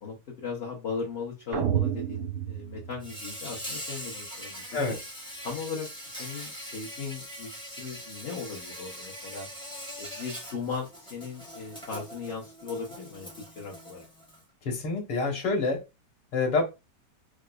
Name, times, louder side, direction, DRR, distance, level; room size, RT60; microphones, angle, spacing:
voice 1, 0.0-5.0 5.4-9.5 10.0-13.3 13.6-14.1, left 5 dB, 50° left, 0.8 m, -38 dB
sound 1, 1.5-3.7, right 9 dB, 65° right, 0.8 m, -30 dB
Insect, 3.0-14.4, equal, 5° left, 0.4 m, -42 dB
voice 2, 14.6-15.8 16.3-16.6, left 3 dB, 85° left, 1.8 m, -27 dB
4.8 x 2.0 x 2.3 m
omnidirectional pair, 1.9 m